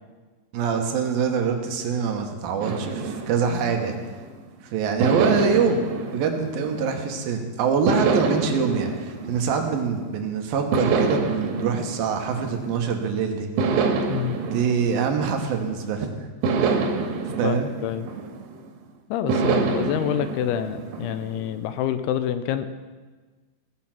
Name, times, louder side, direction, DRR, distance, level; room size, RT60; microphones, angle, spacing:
voice 1, 0.5-4.0 4.7-13.5 14.4-16.3 16.6-16.8 17.4-17.7, right 6 dB, 70° right, 3 dB, 2.8 m, -25 dB
sound 1, 2.6-4.4 5.0-7.3 7.9-10.1 10.7-13.0 13.6-15.8 16.4-18.7 19.3-21.5, right 4 dB, 85° right, 3.3 m, -27 dB
voice 2, 17.4-18.1 19.1-22.7, left 10 dB, 85° left, 11 dB, 2.6 m, -27 dB
17.5 x 7.6 x 5.9 m, 1.4 s
omnidirectional pair, 4.7 m